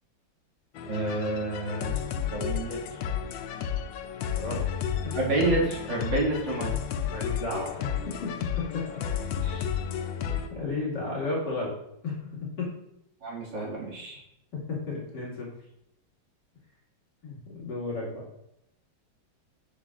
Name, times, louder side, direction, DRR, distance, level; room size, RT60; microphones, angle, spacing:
sound 1, 0.7-10.5, left 8 dB, 85° left, 1.4 m, -32 dB
voice 1, 0.9-2.0 2.3-3.0 5.1-6.7 9.4-9.6 13.2-14.2, right 2 dB, 75° right, -4 dB, 2.8 m, -29 dB
voice 2, 7.1-8.8 10.5-11.7 12.0-12.3 12.6-12.7 14.5-15.5 17.2-18.2, left 3 dB, 65° left, -5 dB, 2.8 m, -33 dB
7.3 x 7.1 x 2.5 m, 0.80 s
omnidirectional pair, 2.0 m